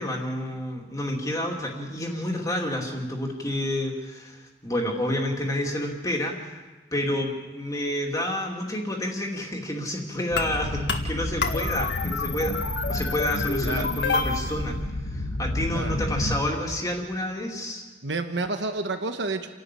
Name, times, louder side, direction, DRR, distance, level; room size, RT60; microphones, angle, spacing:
voice 1, 0.0-6.6 6.9-12.6 12.9-14.8 15.0-17.8, left 1 dB, 20° left, 0 dB, 2.6 m, -29 dB
sound 1, 10.3-16.4, left 2 dB, 70° left, 1.9 m, -28 dB
voice 2, 13.6-14.0 15.7-16.0 18.0-19.5, right 3 dB, 80° right, 7 dB, 1.3 m, -30 dB
29.0 x 12.0 x 8.4 m, 1.3 s
head